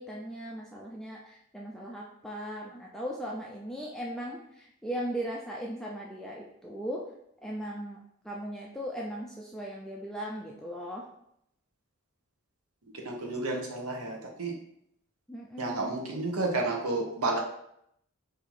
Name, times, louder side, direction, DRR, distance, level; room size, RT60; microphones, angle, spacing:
voice 1, 0.0-7.0 7.4-8.0 8.2-11.0 15.3-16.0, equal, ahead, -3 dB, 0.3 m, -38 dB
voice 2, 13.0-14.5 15.6-17.4, right 2 dB, 80° right, 1 dB, 1.0 m, -31 dB
4.3 x 2.8 x 4.2 m, 0.75 s
head